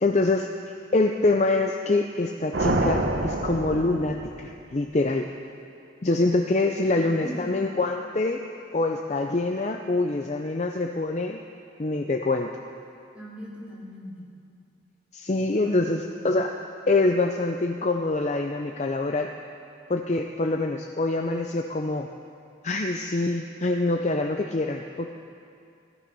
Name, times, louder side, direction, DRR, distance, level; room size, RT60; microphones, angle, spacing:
voice 1, 0.0-0.5 0.9-5.3 6.0-8.4 8.7-11.4 11.8-12.5 15.1-16.5 16.9-19.3 19.9-22.1 22.6-25.1, left 2 dB, 35° left, 3 dB, 0.5 m, -25 dB
sound 1, 2.5-4.8, right 2 dB, 70° right, 1.0 m, -27 dB
voice 2, 6.9-7.8 13.1-14.3 15.5-16.4, equal, 5° right, -7 dB, 3.2 m, -40 dB
16.0 x 13.0 x 5.5 m, 2.4 s
head